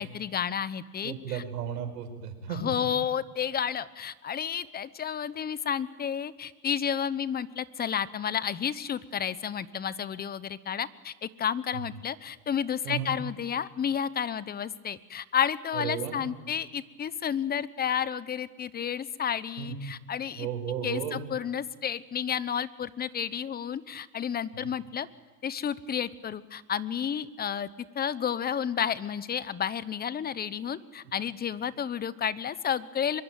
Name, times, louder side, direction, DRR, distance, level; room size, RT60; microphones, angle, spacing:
voice 1, 0.0-1.4 2.5-20.5 20.8-25.1 25.4-27.7 27.9-33.2, left 8 dB, 20° left, 17 dB, 0.9 m, -31 dB
voice 2, 1.0-2.7 12.8-13.1 15.7-16.2 19.6-19.7 20.3-21.2, right 8 dB, 85° right, 7 dB, 5.2 m, -34 dB
24.0 x 22.5 x 9.2 m, 1.3 s
supercardioid pair, 115°, 47 cm